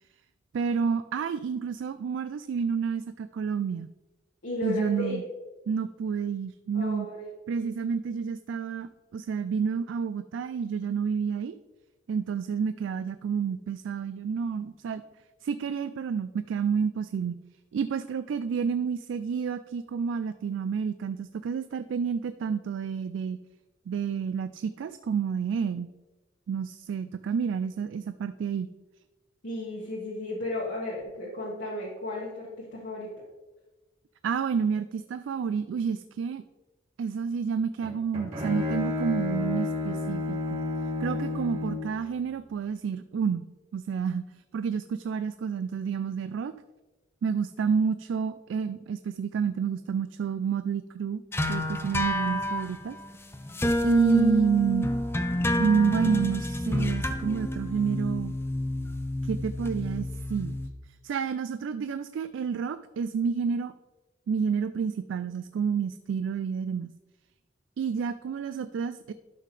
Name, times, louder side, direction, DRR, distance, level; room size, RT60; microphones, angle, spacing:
voice 1, 0.5-3.9 4.6-5.2 5.7-7.1 7.5-11.6 12.1-15.0 15.4-17.4 17.7-23.4 23.9-25.9 26.5-28.7 34.2-36.4 37.0-40.6 41.0-43.5 43.7-44.3 44.5-46.5 47.2-51.2 51.5-53.0 53.8-54.9 55.6-58.3 59.2-60.6 61.0-63.7 64.3-66.9 67.8-69.1, right 6 dB, 80° right, 12 dB, 0.3 m, -29 dB
voice 2, 4.4-5.2 6.7-7.3 29.4-33.1, left 2 dB, 75° left, -5 dB, 1.6 m, -34 dB
Bowed string instrument, 37.8-42.0, left 2 dB, 35° right, 2.4 m, -31 dB
sound 1, 51.3-60.7, left 1 dB, 15° left, 0.5 m, -29 dB
11.5 x 5.7 x 3.2 m, 1.1 s
head